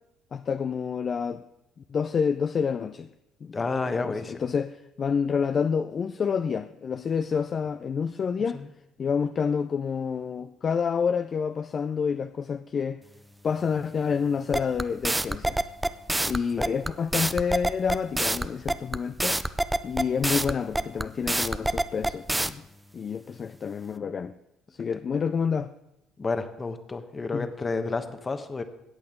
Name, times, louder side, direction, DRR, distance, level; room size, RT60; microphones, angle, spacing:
voice 1, 0.3-1.4 1.9-3.1 3.4-3.6 3.9-8.6 9.0-13.0 13.4-15.6 16.2-19.4 19.8-22.6 22.9-24.3 24.8-25.7 27.3-27.5, left 6 dB, 45° left, 0.4 m, -28 dB
voice 2, 3.5-4.4 8.5-8.7 16.6-16.7 26.2-28.6, left 3 dB, 30° left, 1.2 m, -30 dB
sound 1, 14.5-22.5, right 1 dB, 10° right, 0.6 m, -26 dB
14.0 x 8.5 x 3.8 m
hypercardioid pair, 60°, 0 cm